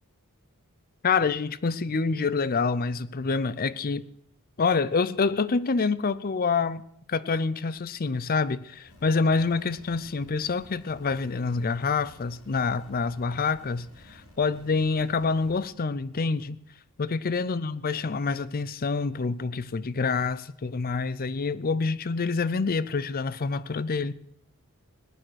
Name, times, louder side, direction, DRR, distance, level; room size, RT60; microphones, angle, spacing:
voice 1, 1.0-4.1 4.6-6.8 7.1-16.6 17.0-24.1, left 4 dB, 40° left, 18 dB, 0.5 m, -27 dB
sound 1, 8.9-15.7, left 1 dB, 80° left, 3.1 m, -53 dB
18.5 x 9.2 x 6.3 m, 0.69 s
head